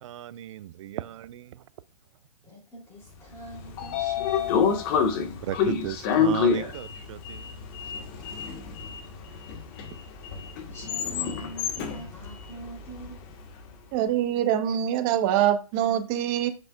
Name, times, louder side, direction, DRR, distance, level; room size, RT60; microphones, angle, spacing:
voice 1, 0.0-1.6 5.4-7.5, right 12 dB, 55° right, 0.4 m, -36 dB
voice 2, 2.4-4.6 10.7-13.2, right 2 dB, 15° left, 3.2 m, -43 dB
Sliding door, 3.3-13.5, left 6 dB, 40° left, 1.5 m, -28 dB
voice 3, 13.9-16.5, right 11 dB, 35° right, 1.1 m, -24 dB
8.1 x 7.4 x 2.4 m
hypercardioid pair, 130°, 19 cm